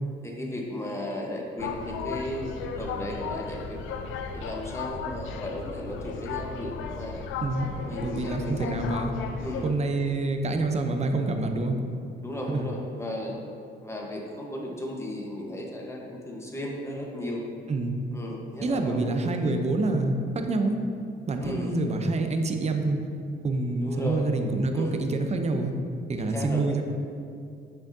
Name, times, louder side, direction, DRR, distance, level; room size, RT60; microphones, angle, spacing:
voice 1, 0.2-3.8 4.3-7.2 7.8-8.9 9.4-9.7 12.2-13.4 13.8-17.4 18.1-19.5 21.4-21.7 23.8-24.3 24.7-25.0 26.2-26.6, left 1 dB, 15° left, -1 dB, 1.0 m, -35 dB
sound 1, 1.6-9.7, left 5 dB, 85° left, 0.5 m, -35 dB
voice 2, 7.4-9.1 9.6-11.8 12.5-12.6 17.7-18.0 18.6-20.8 21.3-23.0 23.4-25.7 26.1-26.8, right 2 dB, 35° right, 5 dB, 0.6 m, -27 dB
6.3 x 6.1 x 2.7 m, 2.5 s
cardioid pair, 90°, 20 cm